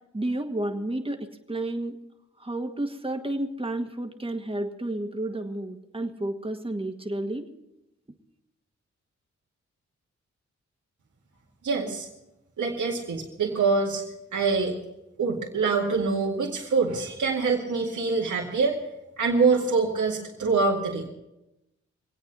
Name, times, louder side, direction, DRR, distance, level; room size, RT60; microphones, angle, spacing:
voice 1, 0.1-2.0 2.4-7.5, right 1 dB, 20° right, 4 dB, 1.9 m, -31 dB
voice 2, 11.6-12.1 12.6-14.0 14.3-14.7 15.2-18.8 19.2-21.1, right 4 dB, 80° right, -4 dB, 2.2 m, -25 dB
24.0 x 8.7 x 5.6 m, 0.92 s
cardioid pair, 55°, 29 cm